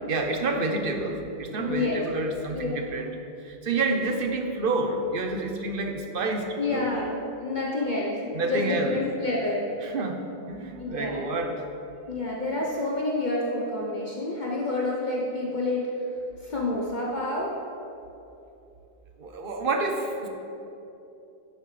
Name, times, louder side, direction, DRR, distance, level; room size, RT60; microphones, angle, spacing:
voice 1, 0.1-3.1 3.4-6.9 8.3-9.0 9.8-11.6 19.2-20.3, right 2 dB, 60° right, 4 dB, 1.1 m, -29 dB
voice 2, 1.6-2.0 2.5-2.7 6.6-9.7 10.8-11.3 12.1-15.9 16.4-17.5, left 2 dB, 50° left, -3 dB, 1.1 m, -28 dB
11.5 x 8.5 x 3.3 m, 2.8 s
omnidirectional pair, 1.1 m